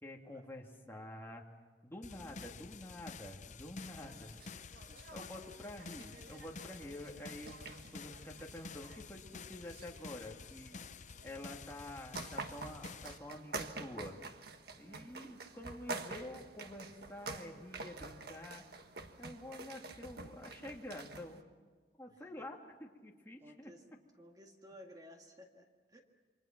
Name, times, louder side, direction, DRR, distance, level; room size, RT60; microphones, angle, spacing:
voice 1, 0.0-1.4 1.8-4.4 5.1-10.8 11.2-14.2 14.8-18.6 19.2-21.4 22.0-23.7, left 1 dB, 15° left, 0 dB, 2.4 m, -48 dB
sound 1, 2.0-13.2, left 5 dB, 45° left, 0.6 m, -51 dB
sound 2, 3.9-21.4, right 3 dB, 60° right, 1.5 m, -48 dB
voice 2, 4.6-5.2 5.5-5.6 14.8-15.2 22.1-22.5 23.4-23.8 24.2-26.0, equal, 20° right, 3 dB, 1.9 m, -58 dB
28.0 x 25.0 x 6.0 m, 1.5 s
head